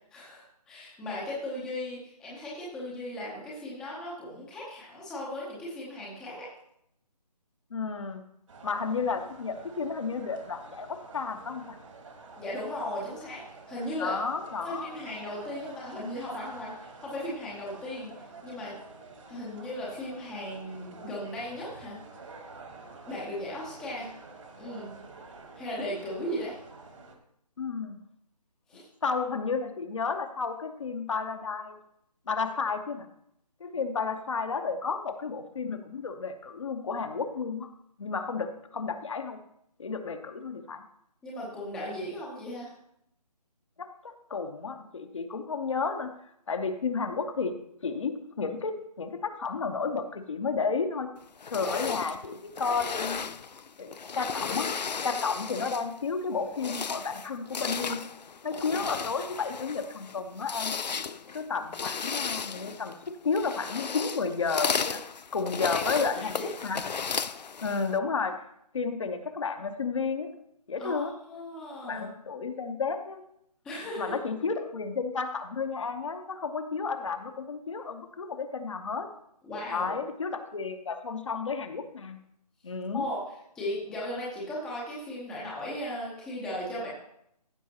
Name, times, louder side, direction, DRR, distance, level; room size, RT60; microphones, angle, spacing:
voice 1, 0.1-6.5 12.4-14.2 14.6-18.1 18.4-18.8 19.3-22.0 23.1-24.1 24.6-24.9 25.6-26.6 28.7-28.9 41.2-42.7 65.6-66.5 70.8-72.1 73.6-74.2 79.4-79.9 82.9-83.2 83.5-86.9, left 1 dB, 5° left, -5 dB, 0.7 m, -37 dB
voice 2, 7.7-8.2 8.6-11.8 14.0-14.9 27.6-28.0 29.0-31.8 32.3-33.1 33.6-37.7 38.0-39.4 39.8-40.8 43.8-46.1 46.5-47.6 47.8-51.1 51.5-53.2 53.8-54.7 55.0-58.0 58.4-60.7 61.3-63.0 63.2-65.0 65.3-66.8 67.6-68.4 68.7-70.3 70.7-71.1 71.9-73.2 74.0-79.1 79.7-82.2 82.6-83.1, left 5 dB, 50° left, 8 dB, 0.9 m, -32 dB
sound 1, 8.5-27.2, right 3 dB, 50° right, 1.5 m, -49 dB
sound 2, 51.4-56.0 56.4-68.0, left 6 dB, 85° left, 0.5 m, -35 dB
14.5 x 6.4 x 2.9 m, 0.74 s
figure-of-eight pair, 155°, 21 cm